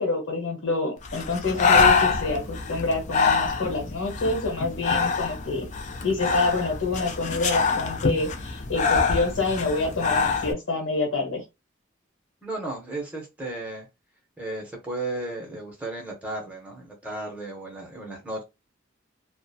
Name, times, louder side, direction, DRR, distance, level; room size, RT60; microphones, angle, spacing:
voice 1, 0.0-5.7 6.0-11.4, left 3 dB, 70° left, 1.0 m, -27 dB
Breathing, 1.0-10.5, left 4 dB, 35° left, 0.4 m, -25 dB
voice 2, 12.4-13.9 14.4-18.4, right 2 dB, 5° right, 0.7 m, -34 dB
2.4 x 2.0 x 2.6 m
head